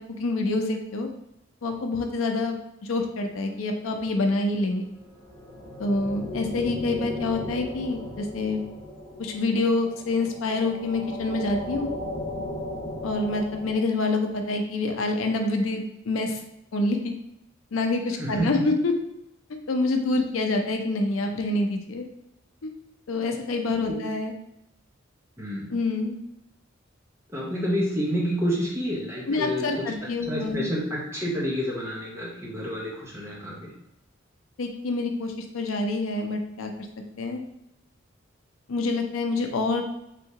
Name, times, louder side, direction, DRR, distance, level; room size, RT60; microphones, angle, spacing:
voice 1, 0.2-1.1 1.6-4.9 5.8-8.6 9.2-11.9 13.0-16.4 16.7-17.0 17.7-18.9 19.7-22.1 22.6-22.7 23.1-24.3 25.7-26.2 29.3-30.6 34.6-36.7 37.2-37.4 38.7-39.8, left 2 dB, 90° left, 4 dB, 0.5 m, -26 dB
sound 1, 4.9-13.7, left 1 dB, 25° left, 0.9 m, -36 dB
voice 2, 18.2-18.6 23.9-24.0 25.4-25.7 27.3-29.9 30.3-33.7, equal, 15° right, -5 dB, 0.8 m, -29 dB
3.3 x 2.8 x 2.8 m, 0.85 s
head